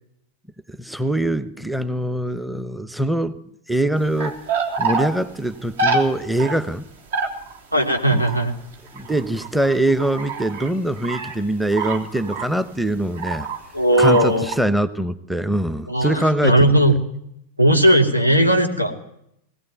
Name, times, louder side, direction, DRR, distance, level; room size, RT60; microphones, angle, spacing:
voice 1, 0.7-3.4 3.7-4.4 4.8-6.8 8.1-8.2 8.9-13.5 14.0-16.7, right 1 dB, ahead, 16 dB, 1.0 m, -23 dB
sound 1, 4.0-5.1 5.8-6.0 6.4-6.6 7.1-10.7 11.0-11.4 11.7-12.7 13.1-13.6 13.9-14.6, right 3 dB, 60° right, 3.3 m, -26 dB
voice 2, 7.7-8.5 13.7-14.5 15.9-16.9 17.6-18.9, right 1 dB, 85° right, 5 dB, 3.0 m, -17 dB
21.0 x 17.5 x 9.1 m, 0.76 s
figure-of-eight pair, 90°, 0 cm